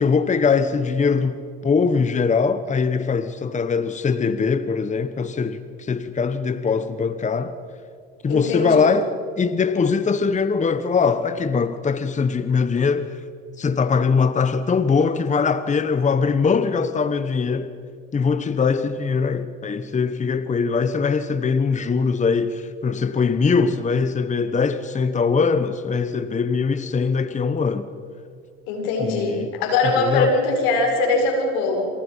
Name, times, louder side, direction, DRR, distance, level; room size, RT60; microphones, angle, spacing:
voice 1, 0.0-1.4 1.6-7.5 8.2-13.2 13.6-17.7 18.1-27.9 29.0-29.5 29.8-30.3, left 5 dB, 25° left, 1.2 m, -21 dB
voice 2, 8.3-8.9 28.7-31.8, left 3 dB, 80° left, 7.3 m, -22 dB
28.0 x 27.5 x 5.8 m
supercardioid pair, 85°, 30 cm